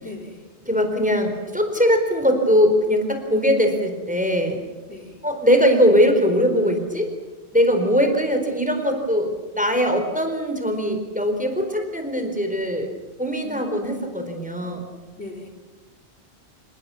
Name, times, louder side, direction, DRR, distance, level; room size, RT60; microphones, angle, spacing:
voice 1, 0.0-0.5 4.9-5.2 13.4-14.3 15.2-15.5, left 3 dB, 70° left, 2 dB, 4.1 m, -39 dB
voice 2, 0.6-4.6 5.2-7.1 7.5-12.9 13.2-14.8, equal, 5° right, 5 dB, 4.3 m, -21 dB
29.0 x 28.5 x 7.1 m, 1.2 s
omnidirectional pair, 1.1 m